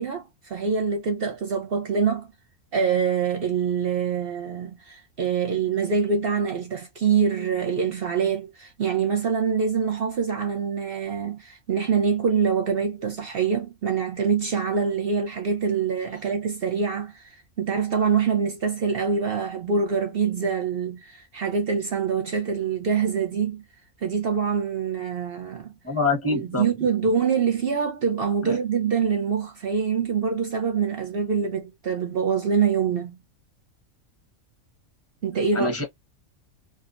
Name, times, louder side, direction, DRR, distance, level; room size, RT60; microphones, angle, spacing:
voice 1, 0.0-2.3 2.7-17.2 17.6-23.6 24.0-25.7 26.3-33.2 35.2-35.8, right 6 dB, 55° right, 0.7 m, -25 dB
voice 2, 25.8-26.6 28.4-28.6 35.5-35.8, left 3 dB, 10° left, 0.8 m, -25 dB
2.7 x 2.2 x 2.4 m
omnidirectional pair, 1.5 m